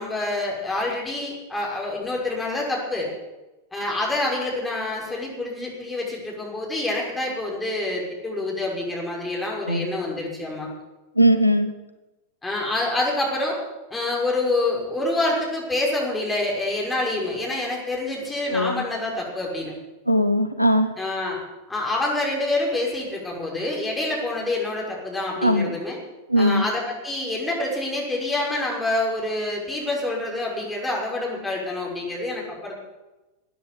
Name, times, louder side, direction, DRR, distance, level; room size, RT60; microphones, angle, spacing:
voice 1, 0.0-3.1 3.7-10.7 12.4-13.6 13.9-19.7 21.0-21.4 21.7-26.0 26.4-32.7, left 2 dB, 10° left, -3 dB, 6.1 m, -27 dB
voice 2, 11.2-11.7 18.5-18.8 20.1-20.9 25.4-25.7 26.3-26.6, equal, 90° left, 9 dB, 1.0 m, -19 dB
14.0 x 9.5 x 9.8 m, 1.1 s
figure-of-eight pair, 90°, 0 cm